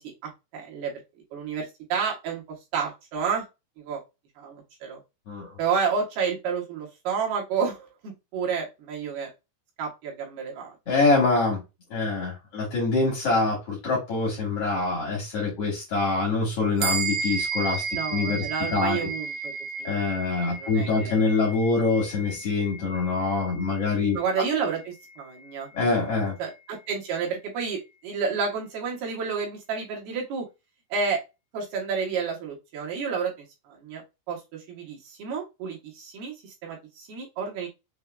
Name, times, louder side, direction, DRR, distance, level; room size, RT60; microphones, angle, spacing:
voice 1, 0.5-0.9 1.3-2.4 2.7-3.4 3.8-4.0 4.4-5.0 5.6-9.3 9.8-10.8 17.9-19.5 19.8-19.9 20.5-21.4 23.8-25.7 26.4-30.4 30.9-31.2 31.5-33.3 33.7-34.0 34.3-37.7, right 6 dB, 70° right, -1 dB, 2.8 m, -30 dB
voice 2, 5.3-5.6 10.9-11.6 11.9-18.4 18.7-19.1 19.8-24.2 25.7-26.3, left 3 dB, 85° left, -3 dB, 1.3 m, -25 dB
sound 1, 16.8-26.5, right 4 dB, 85° right, 3.1 m, -34 dB
6.8 x 2.7 x 2.3 m, 0.24 s
omnidirectional pair, 5.3 m